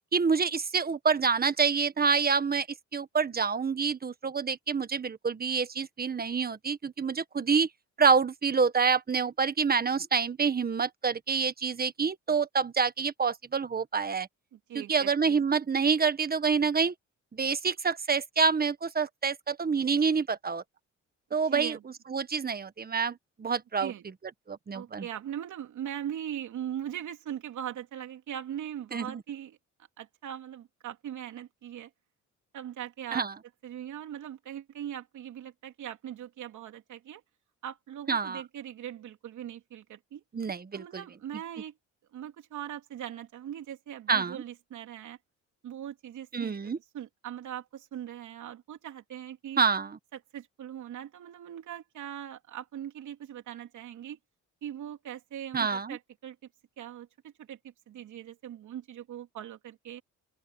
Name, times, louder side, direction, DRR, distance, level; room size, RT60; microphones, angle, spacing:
voice 1, 0.1-2.7 2.9-7.7 8.0-14.3 14.7-16.9 17.3-20.6 21.3-21.8 22.1-23.9 24.5-25.0 28.9-29.2 33.1-33.3 38.1-38.4 40.3-41.0 44.1-44.4 46.3-46.8 49.6-50.0 55.5-56.0, right 5 dB, 30° right, 1.5 m, -27 dB
voice 2, 14.5-15.4 21.5-21.8 23.8-24.0 24.7-29.6 30.0-31.9 32.5-33.3 33.6-37.2 37.6-40.2 40.7-41.7 42.1-45.2 45.6-49.6 50.3-54.2 54.6-56.4 56.8-60.0, right 10 dB, 75° right, 3.3 m, -40 dB
open air
cardioid pair, 90°, 30 cm